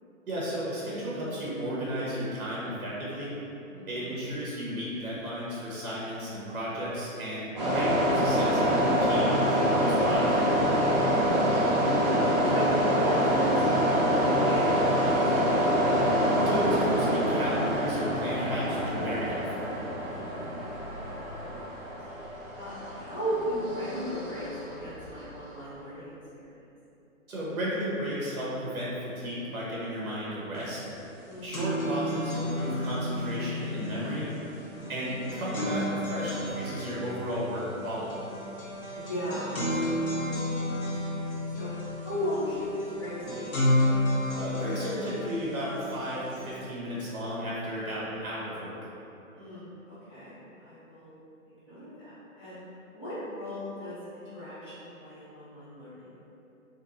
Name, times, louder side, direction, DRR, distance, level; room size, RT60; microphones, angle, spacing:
voice 1, 0.3-3.3 3.9-10.6 16.4-19.7 27.3-30.8 31.4-34.3 34.9-38.2 44.4-48.7, equal, 85° right, -7 dB, 1.1 m, -33 dB
voice 2, 3.7-4.1 11.1-12.1 12.4-15.0 15.3-15.7 18.9-19.3 20.1-20.6 21.0-22.0 22.5-26.5 31.2-31.9 34.7-35.1 38.9-40.2 41.6-41.7 42.0-43.6 49.3-51.1 51.5-52.6 52.9-56.1, equal, 20° left, -18 dB, 0.6 m, -37 dB
sound 1, 7.6-25.2, equal, 35° right, 0.6 m, -26 dB
sound 2, 30.6-30.7 31.0-46.5, left 1 dB, 80° left, 1.2 m, -32 dB
3.2 x 3.0 x 2.5 m, 3.0 s
hypercardioid pair, 170°, 41 cm